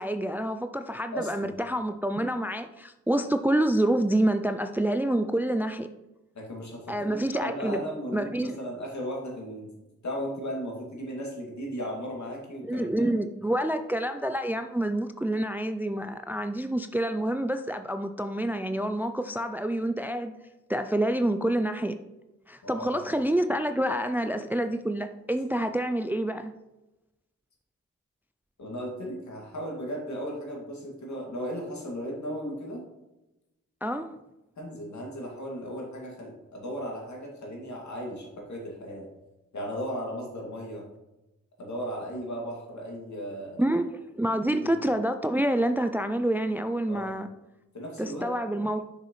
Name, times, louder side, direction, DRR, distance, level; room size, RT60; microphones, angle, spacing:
voice 1, 0.0-5.9 6.9-7.8 8.1-8.6 12.6-20.3 20.7-22.0 22.5-26.5 33.8-34.1 43.6-43.9 44.1-47.3 48.0-48.9, right 1 dB, 5° right, 9 dB, 0.4 m, -27 dB
voice 2, 1.1-1.6 6.3-9.7 10.0-12.9 22.6-23.0 28.6-32.8 34.6-39.1 39.5-40.8 41.6-43.6 44.5-44.7 46.9-47.1 47.7-48.3, equal, 65° left, -2 dB, 2.4 m, -36 dB
6.6 x 6.1 x 3.2 m, 0.98 s
cardioid pair, 45°, 31 cm